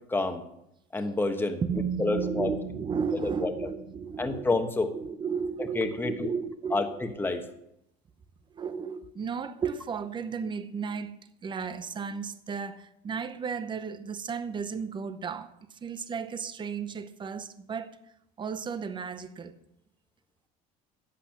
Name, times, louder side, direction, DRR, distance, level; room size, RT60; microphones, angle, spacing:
voice 1, 0.1-0.4 0.9-1.6 2.0-2.6 3.2-3.5 4.2-4.9 5.6-6.3 6.7-7.4, left 3 dB, 10° left, 1.3 m, -28 dB
voice 2, 1.6-4.5 4.9-7.0 8.5-11.1 11.4-18.0 18.4-19.5, right 6 dB, 25° right, 0.8 m, -34 dB
12.0 x 8.3 x 5.9 m
cardioid pair, 115°, 18 cm